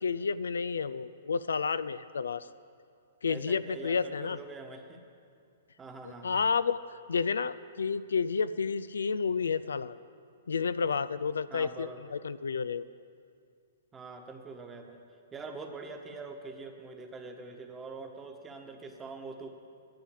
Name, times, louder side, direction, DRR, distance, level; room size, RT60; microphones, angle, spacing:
voice 1, 0.0-2.5 3.2-4.4 6.2-6.8 7.1-10.0 10.5-12.9, left 5 dB, 85° left, 15 dB, 0.3 m, -30 dB
voice 2, 3.3-5.0 5.8-6.5 11.5-12.0 13.9-15.0 15.3-19.5, right 3 dB, 15° right, 4 dB, 1.2 m, -44 dB
10.5 x 7.6 x 8.5 m, 2.3 s
hypercardioid pair, 130°, 0 cm